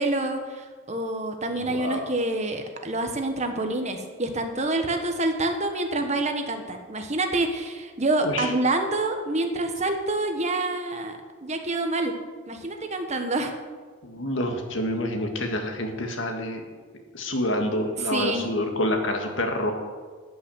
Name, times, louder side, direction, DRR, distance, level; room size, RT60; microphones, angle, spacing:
voice 1, 0.0-12.1 12.5-13.5 18.1-18.5, right 2 dB, 35° right, 5 dB, 1.3 m, -27 dB
voice 2, 1.5-2.1 8.2-8.5 14.0-16.7 16.9-19.7, left 1 dB, 65° left, 4 dB, 1.8 m, -28 dB
12.5 x 6.4 x 9.1 m, 1.5 s
head